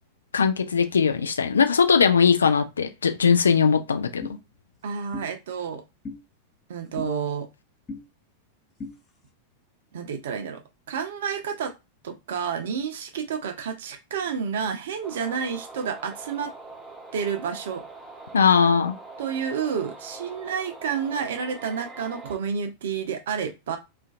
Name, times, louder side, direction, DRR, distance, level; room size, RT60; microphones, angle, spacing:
voice 1, 0.3-4.3 18.3-19.0, left 6 dB, 70° left, 0.3 m, -20 dB
sound 1, 4.2-4.4 5.1-5.3 6.0-6.2 7.0-7.1 7.9-8.0 8.8-8.9, left 3 dB, 20° left, 0.7 m, -35 dB
voice 2, 4.8-5.8 6.7-7.5 9.9-10.6 10.9-11.7 12.0-16.5 17.1-17.8 19.2-23.8, right 6 dB, 60° right, 0.5 m, -30 dB
sound 2, 15.0-22.4, right 3 dB, 15° right, 0.6 m, -43 dB
2.4 x 2.2 x 2.4 m
figure-of-eight pair, 90°, 0 cm